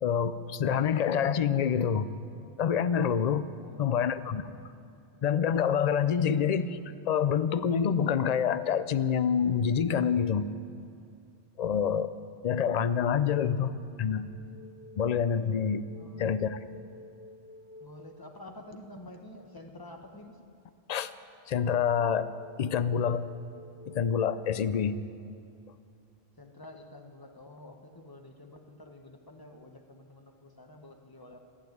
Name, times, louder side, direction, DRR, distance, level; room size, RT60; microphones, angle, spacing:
voice 1, 0.0-2.1 2.6-3.5 3.8-4.4 5.2-6.8 7.1-10.5 11.6-12.1 12.4-14.3 15.0-15.8 16.2-16.6 20.9-21.1 21.5-22.3 22.6-23.3 23.9-25.0, left 7 dB, 50° left, 13 dB, 0.6 m, -27 dB
voice 2, 3.5-4.1 6.2-6.3 15.9-16.3 17.8-20.4 26.4-31.4, left 1 dB, 20° left, 4 dB, 1.2 m, -49 dB
sound 1, 13.9-19.6 22.1-24.7, left 2 dB, 70° right, 2.4 m, -52 dB
15.0 x 9.9 x 9.3 m, 2.5 s
omnidirectional pair, 1.0 m